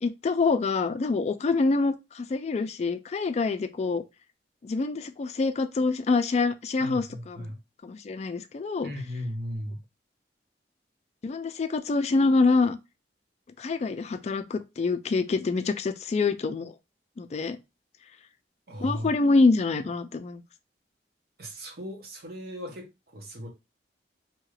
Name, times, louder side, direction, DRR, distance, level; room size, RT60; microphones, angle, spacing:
voice 1, 0.0-4.0 4.6-7.5 7.8-8.9 11.2-12.8 13.6-16.7 17.2-17.6 18.8-20.4, left 3 dB, 40° left, 0.3 m, -26 dB
voice 2, 6.8-7.6 8.8-9.8 18.7-19.1 21.4-23.5, equal, 60° right, 0.9 m, -37 dB
2.8 x 2.4 x 3.1 m
head